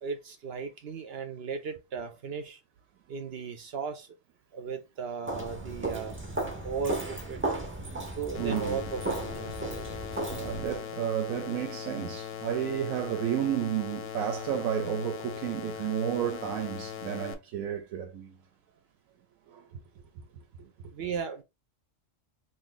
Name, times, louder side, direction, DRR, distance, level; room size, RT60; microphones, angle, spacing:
voice 1, 0.0-2.6 3.1-4.1 4.5-6.1 6.6-7.4 8.2-9.5 20.6-21.4, right 5 dB, 60° right, 0.7 m, -36 dB
Walk footsteps, 5.2-10.8, right 2 dB, 15° right, 0.4 m, -35 dB
voice 2, 7.9-8.8 10.3-18.4 19.5-19.6, right 10 dB, 80° right, 1.0 m, -32 dB
sound 1, 8.3-17.3, left 9 dB, 60° left, 0.7 m, -40 dB
2.7 x 2.6 x 3.8 m
omnidirectional pair, 1.4 m